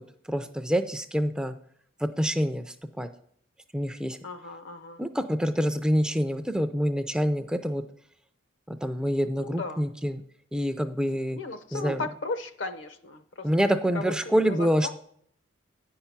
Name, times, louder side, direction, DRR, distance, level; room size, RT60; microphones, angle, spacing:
voice 1, 0.3-1.5 2.0-3.1 3.7-4.2 5.0-7.8 8.7-10.2 10.5-11.4 11.7-12.1 13.4-14.9, equal, 5° right, 8 dB, 0.3 m, -26 dB
voice 2, 4.2-5.0 9.4-9.8 11.3-14.1 14.5-14.9, left 3 dB, 65° left, 9 dB, 0.7 m, -36 dB
9.3 x 5.6 x 5.8 m, 0.65 s
head